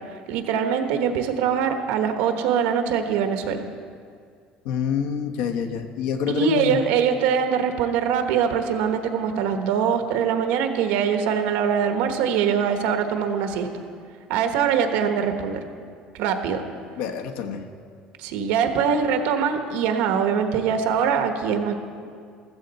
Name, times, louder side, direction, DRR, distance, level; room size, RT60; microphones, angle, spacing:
voice 1, 0.3-3.6 6.3-13.7 14.3-15.6 16.2-16.6 18.2-21.7, right 7 dB, 75° right, 6 dB, 1.2 m, -23 dB
voice 2, 4.6-6.8 17.0-17.7, left 7 dB, 75° left, 5 dB, 1.1 m, -27 dB
14.5 x 14.0 x 4.2 m, 2.2 s
cardioid pair, 175°, 3 cm